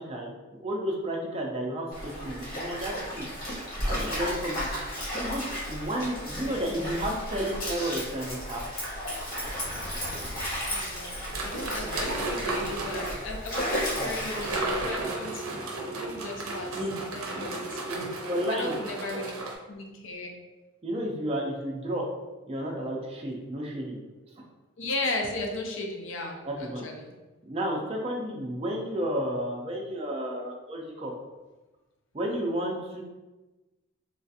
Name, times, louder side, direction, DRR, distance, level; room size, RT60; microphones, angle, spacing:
voice 1, 0.0-3.3 3.8-4.7 5.1-8.6 11.8-11.9 14.0-14.1 16.7-17.0 17.9-18.8 19.0-19.2 20.8-22.1 22.5-24.0 24.3-24.4 26.4-26.8 27.4-31.1 32.1-33.0, equal, 25° right, -1 dB, 0.4 m, -32 dB
Stream, 1.9-15.0, equal, 40° left, 1.0 m, -34 dB
voice 2, 6.4-7.0 10.5-11.1 11.4-15.6 16.0-18.0 18.6-19.3 19.7-20.3 24.8-27.1, left 2 dB, 60° left, 2 dB, 0.5 m, -36 dB
sound 1, 11.3-13.3 14.2-19.5, right 2 dB, 80° right, 0.5 m, -34 dB
3.2 x 2.4 x 2.6 m, 1.1 s
head